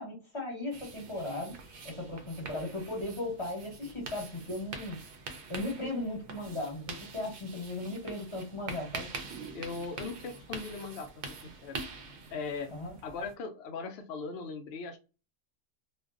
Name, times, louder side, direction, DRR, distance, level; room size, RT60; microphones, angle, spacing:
voice 1, 0.0-1.5 1.8-5.0 5.5-9.1 12.7-12.9, left 2 dB, 25° left, -2 dB, 1.0 m, -37 dB
sound 1, 0.7-13.3, right 4 dB, 60° right, 0.6 m, -45 dB
voice 2, 9.5-11.8 12.3-12.7 13.0-15.0, left 4 dB, 60° left, 6 dB, 0.7 m, -39 dB
2.5 x 2.2 x 2.3 m, 0.31 s
omnidirectional pair, 1.3 m